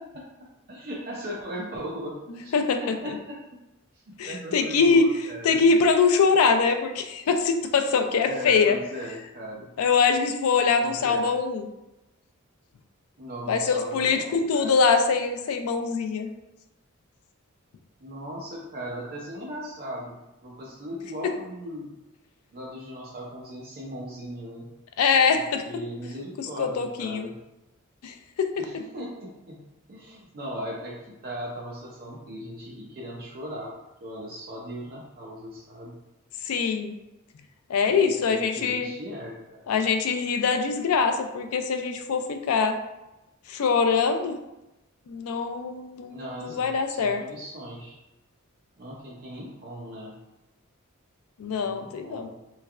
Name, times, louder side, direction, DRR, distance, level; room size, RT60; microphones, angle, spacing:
voice 1, 0.7-3.1 3.9-5.6 8.1-9.7 10.8-11.3 13.2-14.7 18.0-21.9 22.5-24.7 25.3-27.3 28.6-29.6 29.9-33.7 34.0-36.0 38.1-39.6 46.1-47.9 48.8-50.2 51.4-52.3, equal, 45° right, -5 dB, 0.5 m, -38 dB
voice 2, 2.3-2.8 4.2-5.1 5.4-8.8 9.8-11.7 13.5-16.3 25.0-25.6 26.4-27.3 28.0-28.7 36.4-37.0 37.7-38.9 39.7-42.8 43.5-44.4 45.1-47.2 51.4-52.3, left 5 dB, 85° left, 7 dB, 0.4 m, -23 dB
3.2 x 3.1 x 2.4 m, 0.97 s
head